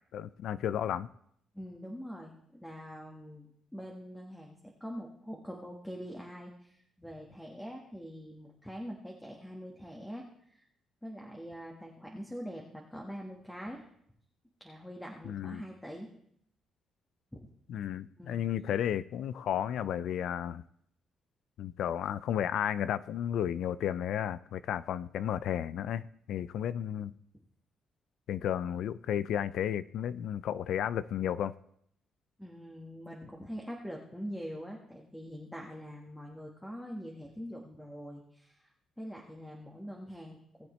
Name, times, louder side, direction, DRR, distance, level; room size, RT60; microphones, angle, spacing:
voice 1, 0.1-1.1 15.2-15.6 17.7-20.6 21.6-27.1 28.3-31.5, left 10 dB, 75° left, 0.4 m, -33 dB
voice 2, 1.5-10.2 10.5-10.7 11.0-13.8 14.6-16.1 17.3-17.4 18.2-18.5 32.4-38.7 39.0-40.7, equal, 5° left, 1.5 m, -44 dB
18.5 x 7.3 x 3.2 m
cardioid pair, 90°, 0 cm